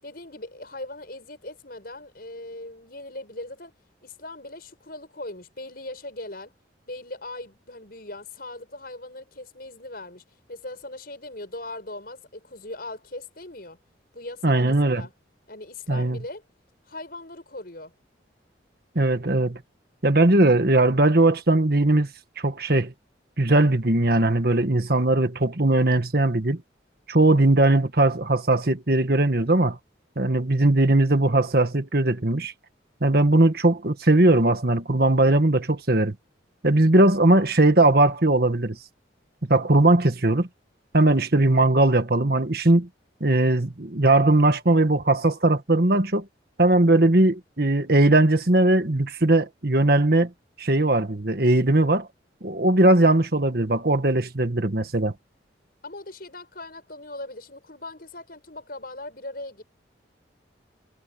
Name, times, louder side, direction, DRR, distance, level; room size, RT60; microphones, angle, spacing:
voice 1, 0.0-3.7 4.0-6.5 6.9-13.8 14.1-15.1 15.5-16.4 16.9-17.9 55.8-59.6, left 2 dB, 50° left, 7.1 m, -39 dB
voice 2, 14.4-15.0 15.9-16.2 18.9-19.6 20.0-22.1 22.4-22.9 23.4-26.6 27.1-29.8 30.2-32.5 33.0-36.1 36.6-38.8 39.5-40.5 40.9-42.9 43.2-46.2 46.6-50.3 50.6-52.1 52.4-55.1, right 2 dB, 55° right, 1.6 m, -19 dB
head